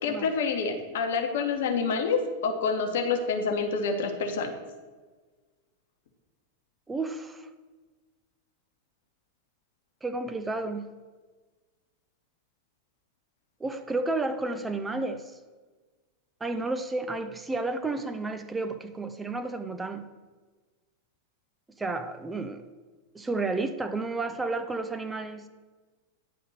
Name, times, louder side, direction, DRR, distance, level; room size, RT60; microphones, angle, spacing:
voice 1, 0.0-4.5, left 5 dB, 55° left, 5 dB, 1.0 m, -27 dB
voice 2, 6.9-7.5 10.0-10.9 13.6-15.3 16.4-20.1 21.8-22.6 23.1-25.4, right 3 dB, 10° right, 7 dB, 0.5 m, -31 dB
9.4 x 3.5 x 6.5 m, 1.3 s
figure-of-eight pair, 90°, 0 cm